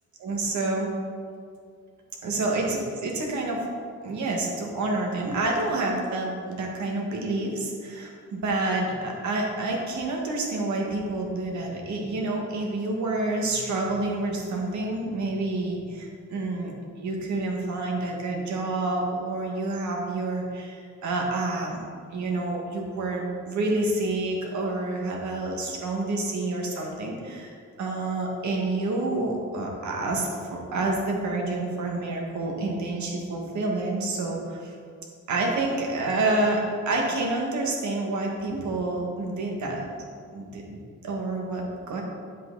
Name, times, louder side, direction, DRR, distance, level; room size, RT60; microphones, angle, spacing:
voice 1, 0.2-0.9 2.2-3.7 4.0-21.8 22.1-34.7 35.3-39.8 40.3-42.0, right 2 dB, 70° right, 0 dB, 1.8 m, -28 dB
9.7 x 7.6 x 4.0 m, 2.2 s
cardioid pair, 145°, 30 cm